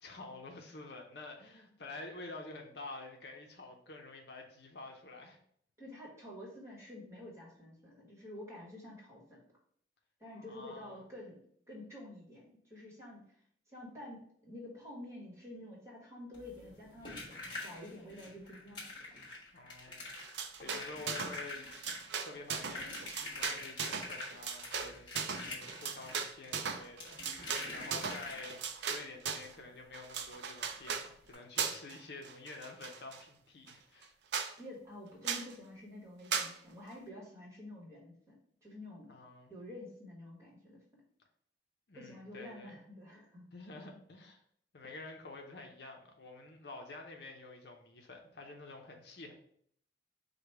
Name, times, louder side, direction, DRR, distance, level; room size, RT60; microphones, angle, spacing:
voice 1, 0.0-5.4 10.3-11.0 19.5-20.2 20.6-23.0 23.4-34.1 39.1-39.5 41.9-42.8 43.5-44.4 44.7-49.3, left 3 dB, 60° left, 2 dB, 0.6 m, -49 dB
voice 2, 5.8-9.4 10.2-13.4 13.7-17.2 17.5-19.2 20.6-20.8 34.6-39.1 39.5-41.0 41.9-43.5, left 1 dB, 15° right, -4 dB, 1.3 m, -49 dB
sound 1, 16.3-28.8 30.3-30.4 30.7-30.8 31.2-31.3, left 2 dB, 25° left, 1.3 m, -46 dB
sound 2, 20.2-21.4 21.7-29.5 29.9-31.1 31.6-32.0 32.2-33.2 33.7-33.8 34.0-34.1 34.3-34.5 35.2-35.5 36.3-36.5, right 6 dB, 70° right, 0.4 m, -38 dB
4.9 x 2.2 x 4.6 m, 0.64 s
head